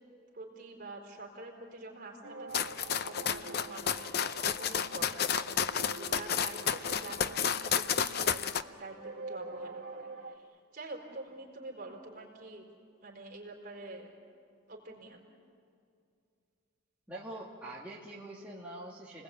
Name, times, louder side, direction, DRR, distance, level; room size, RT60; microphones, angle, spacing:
voice 1, 0.3-8.4 8.8-12.7 13.0-14.1 14.7-15.2, right 2 dB, 45° right, 0 dB, 4.5 m, -46 dB
sound 1, 2.2-10.4, right 3 dB, 70° right, 1.7 m, -46 dB
sound 2, 2.5-8.6, left 7 dB, 50° left, 0.6 m, -31 dB
voice 2, 17.1-19.2, right 1 dB, 5° right, -6 dB, 2.5 m, -44 dB
30.0 x 20.0 x 8.6 m, 2.4 s
head